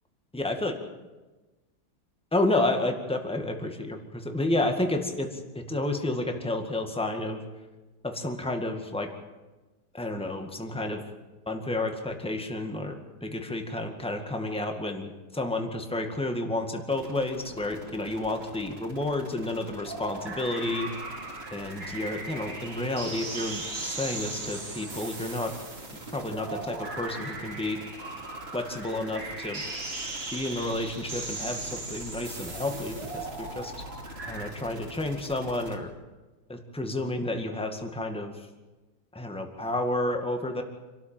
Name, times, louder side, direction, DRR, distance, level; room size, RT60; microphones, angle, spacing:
voice 1, 0.3-0.8 2.3-7.4 8.0-9.1 9.9-11.0 11.5-12.9 13.2-20.9 21.5-25.5 26.1-27.8 28.5-29.6 30.3-33.7 34.2-35.9 36.5-38.5 39.1-40.6, left 2 dB, 5° left, 4 dB, 1.9 m, -30 dB
sound 1, 16.9-35.8, right 1 dB, 35° right, 3.0 m, -45 dB
sound 2, 19.9-34.5, right 3 dB, 60° right, 3.4 m, -38 dB
27.0 x 13.5 x 9.0 m, 1.2 s
omnidirectional pair, 1.9 m